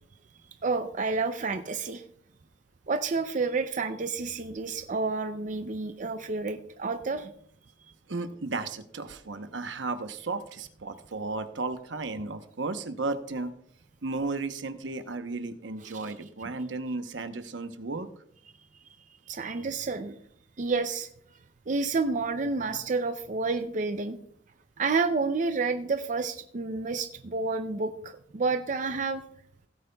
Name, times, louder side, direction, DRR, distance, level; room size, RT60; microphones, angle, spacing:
voice 1, 0.6-2.0 2.9-7.3 15.8-15.9 19.3-20.2 20.6-21.1 21.7-24.2 24.8-29.2, right 4 dB, 40° right, 8 dB, 0.5 m, -29 dB
voice 2, 8.1-13.5 14.0-18.1, right 3 dB, 75° right, 9 dB, 0.9 m, -34 dB
17.0 x 9.1 x 2.3 m, 0.65 s
head